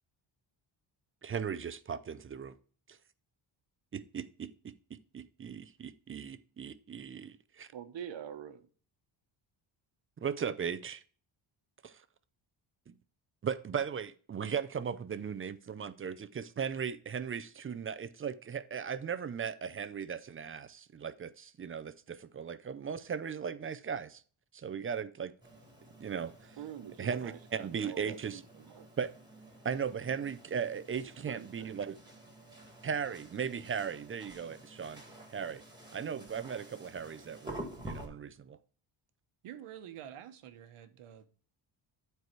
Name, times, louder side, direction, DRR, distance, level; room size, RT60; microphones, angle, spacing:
voice 1, 1.2-2.5 2.9-3.0 3.9-4.7 5.1-7.7 10.2-11.0 11.8-12.0 12.9-13.0 13.4-24.2 24.5-25.3 26.0-26.6 27.0-28.4 29.0-29.1 29.6-32.0 32.8-35.0 35.3-35.6 35.9-38.6, right 7 dB, 30° right, 0.4 m, -37 dB
voice 2, 7.7-8.7 26.6-28.9 31.2-31.7, right 9 dB, 60° right, 1.1 m, -46 dB
sound 1, 25.4-38.1, right 1 dB, 10° right, 1.7 m, -50 dB
voice 3, 39.4-41.3, right 10 dB, 85° right, 1.2 m, -48 dB
11.0 x 4.7 x 4.5 m
wide cardioid pair, 170°, 50 cm